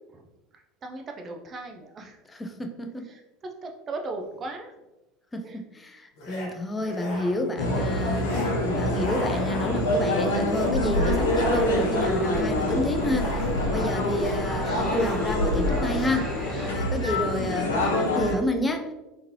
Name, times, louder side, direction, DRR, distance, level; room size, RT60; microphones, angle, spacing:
voice 1, 0.8-2.1 3.6-4.7 5.4-5.6 17.0-17.1, right 3 dB, 35° right, 3 dB, 0.5 m, -36 dB
voice 2, 2.3-3.1 5.3-16.3 16.6-18.9, left 1 dB, 15° left, 5 dB, 0.5 m, -30 dB
sound 1, 4.2-4.4 6.2-6.5 6.8-7.5 8.2-8.6 8.9-10.0 10.5-10.7 11.1-12.1 13.0-13.8 14.1-14.5 14.8-15.2 15.8-16.0, left 1 dB, 60° left, 1.3 m, -37 dB
sound 2, 7.6-18.4, left 1 dB, 75° left, 0.7 m, -26 dB
sound 3, 11.5-16.7, left 1 dB, ahead, 1.5 m, -35 dB
3.6 x 3.0 x 2.8 m, 1.0 s
figure-of-eight pair, 75°, 0 cm